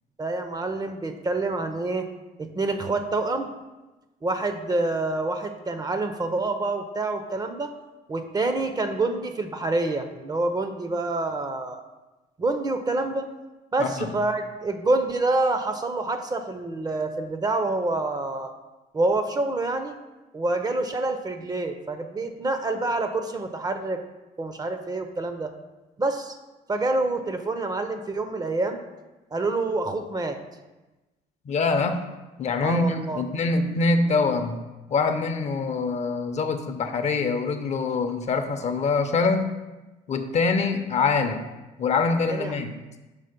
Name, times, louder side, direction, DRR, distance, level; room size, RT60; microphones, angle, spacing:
voice 1, 0.2-2.1 2.4-3.5 4.2-7.7 8.1-11.8 12.4-13.3 13.7-18.5 18.9-20.0 20.3-24.0 24.4-25.5 26.0-26.3 26.7-28.8 29.3-30.4 32.6-33.2 42.3-42.5, right 2 dB, 25° right, 7 dB, 0.5 m, -27 dB
voice 2, 31.5-32.0 32.4-34.6 34.9-39.5 40.1-41.4 41.8-42.7, left 4 dB, 40° left, 7 dB, 0.6 m, -24 dB
5.6 x 3.7 x 5.1 m, 1.1 s
cardioid pair, 110°, 17 cm